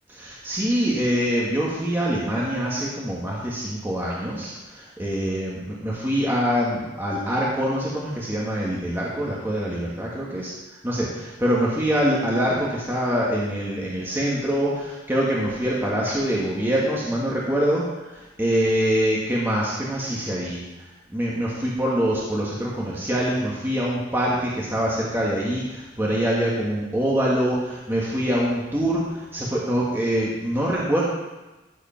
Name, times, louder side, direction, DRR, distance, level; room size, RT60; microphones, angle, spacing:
voice 1, 0.2-10.5 10.8-17.9 18.1-20.6 21.1-31.0, equal, 10° right, -5 dB, 1.6 m, -24 dB
13.5 x 5.0 x 5.8 m, 1.1 s
head